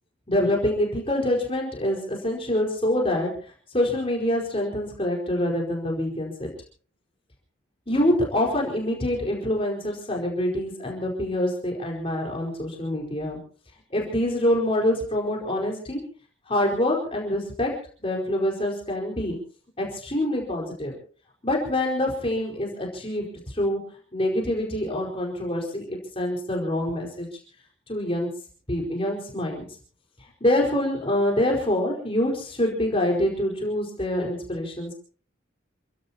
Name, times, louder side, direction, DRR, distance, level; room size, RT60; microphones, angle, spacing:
voice 1, 0.3-6.5 7.9-13.4 13.9-16.0 16.5-17.7 18.0-19.4 19.8-20.9 21.4-23.8 24.1-27.3 27.9-28.3 28.7-29.6 30.4-34.9, left 1 dB, 30° left, -1 dB, 4.7 m, -25 dB
28.5 x 16.5 x 2.9 m, 0.43 s
head